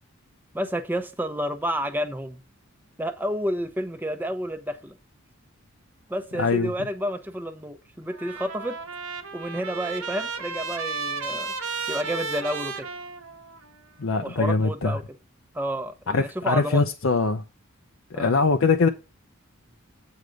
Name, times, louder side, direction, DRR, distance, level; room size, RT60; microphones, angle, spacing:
voice 1, 0.5-2.4 3.0-5.0 6.1-8.8 9.3-11.5 11.9-12.9 14.2-15.0 15.5-16.8 18.1-18.3, equal, 10° right, 0.7 m, -30 dB
voice 2, 6.4-6.7 14.0-14.9 16.1-17.4 18.1-18.9, left 4 dB, 65° left, 0.6 m, -22 dB
Trumpet, 8.1-13.7, right 4 dB, 80° right, 1.1 m, -33 dB
8.1 x 4.9 x 5.1 m
head